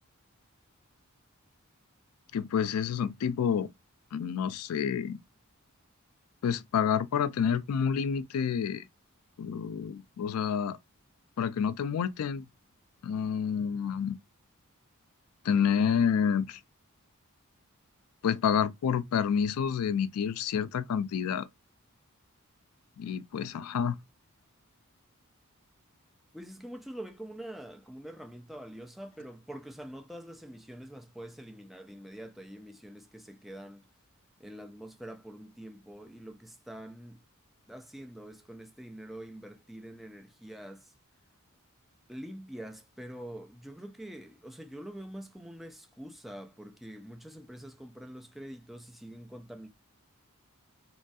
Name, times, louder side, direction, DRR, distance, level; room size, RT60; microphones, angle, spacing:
voice 1, 2.3-3.7 4.1-5.2 6.4-8.8 9.4-10.8 11.4-12.4 13.0-14.2 15.4-16.6 18.2-21.5 23.0-24.0, left 7 dB, 85° left, 0.4 m, -28 dB
voice 2, 26.3-33.9 34.4-37.2 37.7-40.9 42.1-49.7, right 1 dB, ahead, 0.3 m, -45 dB
3.0 x 2.3 x 2.6 m
head